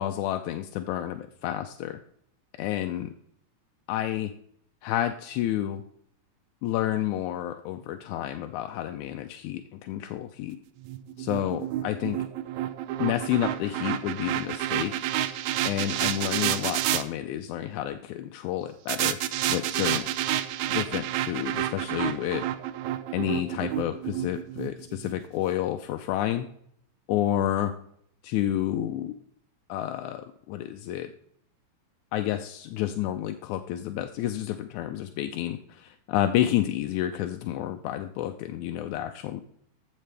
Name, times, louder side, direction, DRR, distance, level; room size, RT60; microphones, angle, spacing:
voice 1, 0.0-2.0 2.6-3.1 3.9-4.3 4.8-5.8 6.6-10.6 11.2-12.2 13.0-14.9 15.6-19.2 19.5-20.1 20.7-22.4 23.1-26.5 27.1-27.7 28.2-29.1 29.7-31.1 32.1-39.4, left 12 dB, 85° left, 7 dB, 2.0 m, -30 dB
sound 1, 10.8-17.0 18.9-25.1, right 13 dB, 80° right, 1.9 m, -29 dB
14.0 x 6.5 x 3.4 m, 0.67 s
omnidirectional pair, 3.4 m